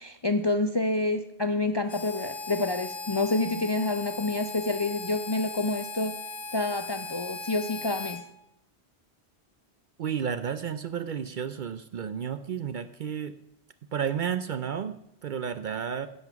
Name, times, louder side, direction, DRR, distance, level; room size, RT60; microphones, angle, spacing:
voice 1, 0.0-6.2 6.5-8.2, left 2 dB, 35° left, 7 dB, 0.4 m, -28 dB
Harmonica, 1.9-8.2, left 3 dB, 50° left, 1.2 m, -38 dB
voice 2, 10.0-13.3 13.9-16.1, right 7 dB, 60° right, 11 dB, 0.6 m, -32 dB
16.0 x 5.6 x 5.9 m, 0.81 s
omnidirectional pair, 1.1 m